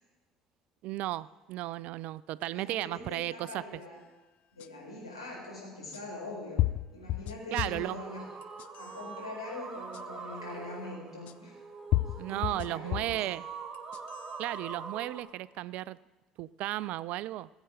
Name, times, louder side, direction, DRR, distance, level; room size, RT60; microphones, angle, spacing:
voice 1, 0.8-3.6 7.5-8.0 12.2-13.5 14.4-16.0 16.4-17.5, right 15 dB, 55° right, 21 dB, 0.3 m, -34 dB
voice 2, 2.5-4.0 4.5-6.6 6.9-8.3 8.7-11.5 12.1-13.2, left 2 dB, 85° left, -5 dB, 4.3 m, -43 dB
sound 1, 4.6-4.7 5.9-6.0 6.6-7.9 8.4-9.0 9.9-10.0 11.3-11.4 11.9-13.2 13.7-14.3, left 15 dB, 50° left, 0.5 m, -32 dB
sound 2, 7.7-15.2, right 4 dB, 30° right, 1.6 m, -44 dB
20.0 x 8.2 x 5.0 m, 1.2 s
figure-of-eight pair, 55°, 3 cm